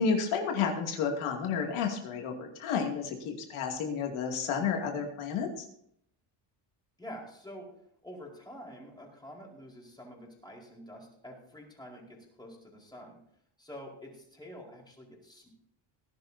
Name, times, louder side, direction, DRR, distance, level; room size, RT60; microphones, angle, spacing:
voice 1, 0.0-5.6, left 6 dB, 85° left, 2 dB, 2.6 m, -31 dB
voice 2, 7.0-7.7 8.0-13.2 13.6-15.5, equal, 10° left, -2 dB, 4.4 m, -47 dB
19.5 x 11.0 x 2.8 m, 0.71 s
cardioid pair, 125°, 49 cm